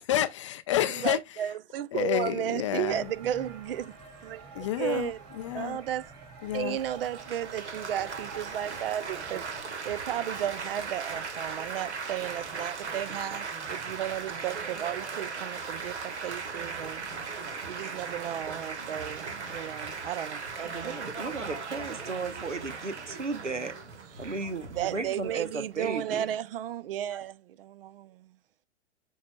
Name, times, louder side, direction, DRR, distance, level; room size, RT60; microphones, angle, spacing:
voice 1, 0.0-1.5 1.9-3.1 4.5-5.8 6.4-6.8, left 12 dB, 30° left, 0.3 m, -30 dB
voice 2, 1.0-3.9 4.2-4.5 4.8-5.2 5.5-6.1 6.5-9.4 9.8-17.0 17.7-21.0 24.2-24.3 24.8-28.3, right 11 dB, 55° right, 0.5 m, -34 dB
sound 1, 2.8-9.6, right 5 dB, 35° right, 2.8 m, -47 dB
Laughter / Applause / Chatter, 6.8-25.9, right 5 dB, 70° right, 1.5 m, -38 dB
voice 3, 20.7-23.7 24.2-26.3 27.1-27.2, right 4 dB, 90° right, 0.9 m, -35 dB
8.4 x 5.4 x 2.2 m
figure-of-eight pair, 105°, 35 cm